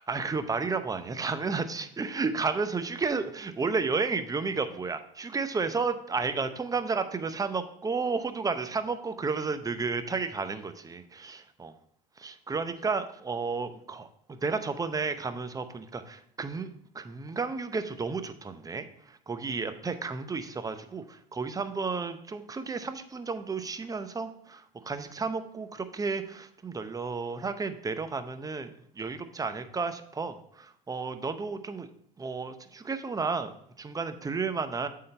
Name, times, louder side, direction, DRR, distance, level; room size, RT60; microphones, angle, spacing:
voice 1, 0.0-11.7 12.2-31.9 32.2-34.9, right 4 dB, 15° right, 10 dB, 0.7 m, -32 dB
7.7 x 3.8 x 5.3 m, 0.68 s
hypercardioid pair, 80°, 20 cm